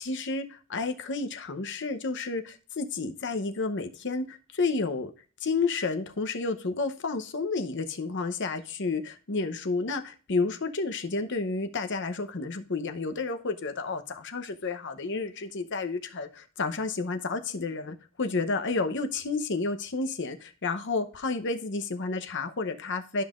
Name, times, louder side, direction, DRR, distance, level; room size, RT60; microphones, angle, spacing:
voice 1, 0.0-5.1 5.4-23.2, left 3 dB, 60° left, 7 dB, 0.8 m, -31 dB
12.0 x 5.5 x 2.5 m, 0.37 s
head